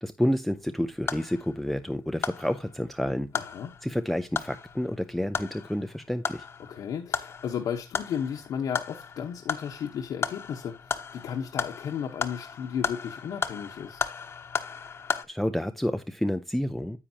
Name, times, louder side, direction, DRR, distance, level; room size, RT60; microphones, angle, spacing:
voice 1, 0.0-3.3 3.8-6.5 15.3-17.0, equal, ahead, 0.5 m, -29 dB
sound 1, 0.5-15.2, left 6 dB, 35° left, 1.0 m, -36 dB
voice 2, 3.3-3.7 6.6-14.0, left 8 dB, 65° left, 1.1 m, -34 dB
9.9 x 8.6 x 2.8 m
cardioid pair, 160°, 7 cm